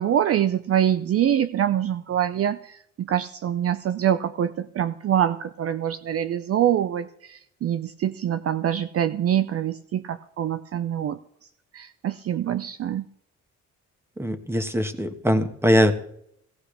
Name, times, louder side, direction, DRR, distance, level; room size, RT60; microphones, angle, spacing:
voice 1, 0.0-11.2 11.7-13.1, right 10 dB, 50° right, 11 dB, 0.6 m, -25 dB
voice 2, 14.2-15.9, equal, 10° right, 8 dB, 1.4 m, -21 dB
17.5 x 14.5 x 3.4 m, 0.72 s
cardioid pair, 90°, 30 cm